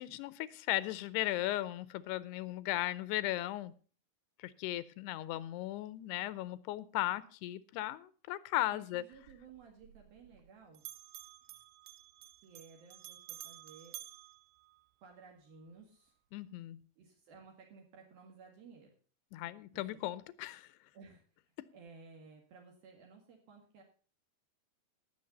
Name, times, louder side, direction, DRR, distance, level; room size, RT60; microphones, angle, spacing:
voice 1, 0.0-3.7 4.4-9.0 16.3-16.8 19.3-20.7, left 16 dB, 85° left, 17 dB, 2.8 m, -37 dB
voice 2, 8.6-10.8 11.5-11.6 12.4-14.0 15.0-16.2 17.0-18.9 19.7-20.0 20.9-21.3 21.7-23.8, right 5 dB, 65° right, 0 dB, 3.6 m, -56 dB
Bell, 9.1-10.5 10.8-15.2, right 15 dB, 80° right, 2.1 m, -52 dB
19.0 x 7.4 x 4.1 m, 0.39 s
omnidirectional pair, 4.7 m